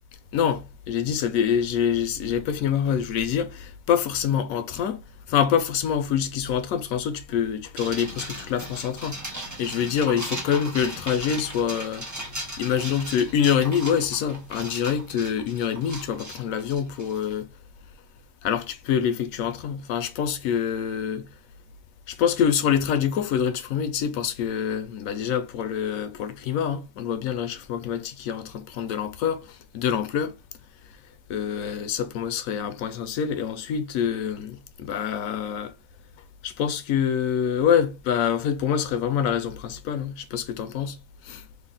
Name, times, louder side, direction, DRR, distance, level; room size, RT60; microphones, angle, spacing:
voice 1, 0.3-5.0 5.3-12.1 12.6-17.5 18.4-21.3 22.1-30.3 31.3-35.7 36.4-41.0 41.2-41.4, left 8 dB, 85° left, 1.0 m, -26 dB
sound 1, 7.8-17.3, right 1 dB, 15° right, 0.7 m, -37 dB
3.3 x 2.2 x 3.7 m
omnidirectional pair, 1.4 m